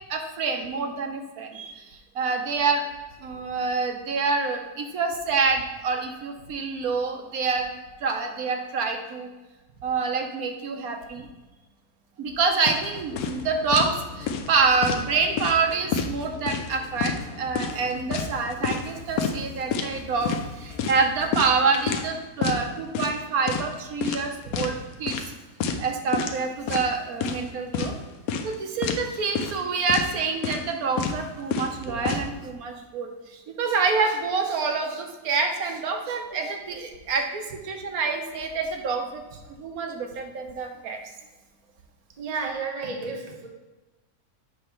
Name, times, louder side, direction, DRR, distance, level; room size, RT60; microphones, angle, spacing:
voice 1, 0.1-1.8 2.1-2.9 3.2-7.7 8.0-9.3 9.8-11.3 12.2-25.3 25.8-27.9 28.4-33.1 33.5-39.2 39.6-41.0, right 4 dB, 75° right, 4 dB, 1.2 m, -27 dB
sound 1, 12.6-12.8 13.2-13.4 13.7-14.0 14.3-15.0 15.4-15.6 15.9-16.7 17.0-17.2 17.5-18.9 19.2-19.4 19.7-19.9 20.2-20.5 20.8-22.1 22.4-22.6 22.9-23.2 23.5-23.7 24.0-24.7 25.1-25.3 25.6-25.9 26.1-26.4 26.7-27.4 27.7-27.9 28.3-28.5 28.8-29.0 29.3-29.6 29.9-30.1 30.4-30.7 31.0-31.2 31.5-32.2, left 6 dB, 75° left, 1.1 m, -28 dB
sound 2, 12.8-21.5, left 5 dB, 55° left, 0.9 m, -43 dB
voice 2, 42.2-43.5, right 4 dB, 30° right, 2 dB, 0.8 m, -32 dB
7.6 x 3.2 x 5.7 m, 1.1 s
omnidirectional pair, 1.6 m